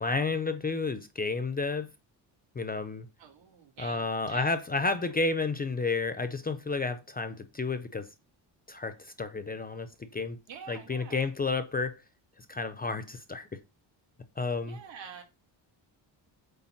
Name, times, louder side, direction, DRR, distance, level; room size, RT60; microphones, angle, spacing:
voice 1, 0.0-1.9 2.6-3.1 3.8-8.1 8.7-10.4 10.7-12.0 12.4-13.6 14.4-14.8, left 3 dB, 20° left, 0.5 m, -31 dB
voice 2, 3.2-4.5 10.5-11.3 14.6-15.2, right 7 dB, 70° right, 2.4 m, -47 dB
8.6 x 3.4 x 5.7 m
cardioid pair, 170°, 46 cm